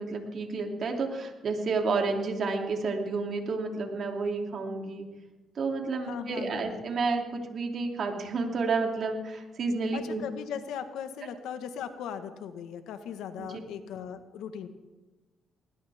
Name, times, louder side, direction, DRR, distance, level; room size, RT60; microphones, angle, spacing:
voice 1, 0.0-5.1 5.6-10.2 13.4-13.5, right 4 dB, 55° right, 2 dB, 2.8 m, -30 dB
voice 2, 6.1-6.8 9.9-14.7, left 8 dB, 85° left, 9 dB, 1.4 m, -38 dB
20.0 x 19.5 x 3.6 m, 1.2 s
cardioid pair, 90°, 0 cm